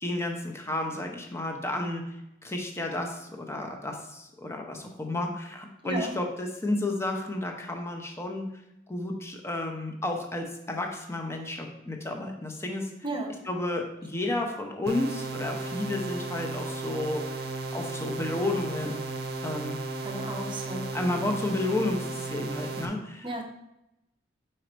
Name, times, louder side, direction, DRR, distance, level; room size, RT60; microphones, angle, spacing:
voice 1, 0.0-2.2 2.4-8.5 8.9-12.9 13.4-17.5 17.7-19.0 19.4-19.8 20.9-23.4, left 2 dB, 15° left, 2 dB, 0.7 m, -32 dB
voice 2, 13.0-13.4 20.0-20.9 23.2-23.4, right 1 dB, 25° right, 3 dB, 0.9 m, -33 dB
sound 1, 14.9-22.9, right 3 dB, 55° right, 0.7 m, -35 dB
4.7 x 4.3 x 5.0 m, 0.87 s
head